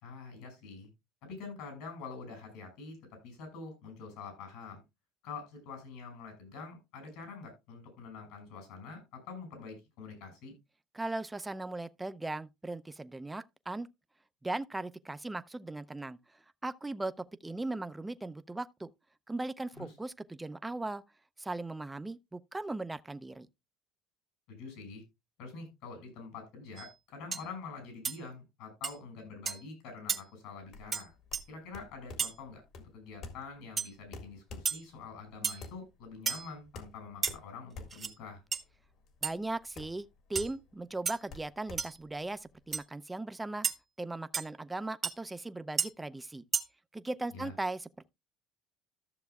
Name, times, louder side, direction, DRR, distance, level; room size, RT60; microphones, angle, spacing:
voice 1, 0.0-0.9 1.2-4.8 5.2-10.5 19.8-19.9 24.5-25.0 25.4-31.1 31.5-32.6 32.9-38.4 47.3-47.5, left 4 dB, 75° left, 6.3 m, -46 dB
voice 2, 10.9-13.9 14.4-16.2 16.6-18.9 19.3-21.0 21.4-23.5 39.2-43.7 44.0-46.4 46.9-48.1, right 2 dB, 10° right, 0.5 m, -38 dB
sound 1, 26.8-26.9 27.3-27.5 28.0-28.2 28.8-28.9 29.4-29.6 30.1-30.2 30.9-31.0 31.3-31.4 32.2-32.3 33.8-33.9 34.6-34.8 35.4-35.7 36.3-36.5 37.2-37.3 37.9-38.1 38.5-38.6 39.2-39.3 40.3-40.5 41.0-41.2 41.8-41.9 42.7-42.8 43.6-43.8 44.3-44.4 45.0-45.1 45.8-45.9 46.5-46.6, right 6 dB, 30° right, 1.0 m, -32 dB
sound 2, 30.6-42.8, left 3 dB, 55° left, 1.9 m, -49 dB
14.0 x 6.9 x 2.3 m
cardioid pair, 120°, 0 cm